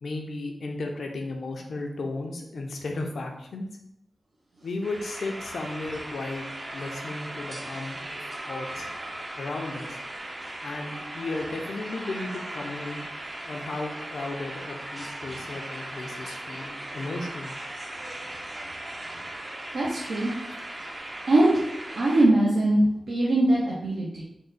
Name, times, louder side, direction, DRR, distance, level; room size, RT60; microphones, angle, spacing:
voice 1, 0.0-3.7 4.6-6.5 6.7-8.2 8.5-8.9 9.4-10.0 10.6-13.0 13.4-17.6, left 2 dB, 80° left, 2 dB, 0.5 m, -34 dB
sound 1, 4.8-22.3, right 1 dB, 30° right, 0.5 m, -38 dB
voice 2, 19.7-20.3 21.3-21.6 21.9-24.2, right 1 dB, 75° right, -6 dB, 0.6 m, -21 dB
3.6 x 2.1 x 3.9 m, 0.82 s
wide cardioid pair, 110°, 0 cm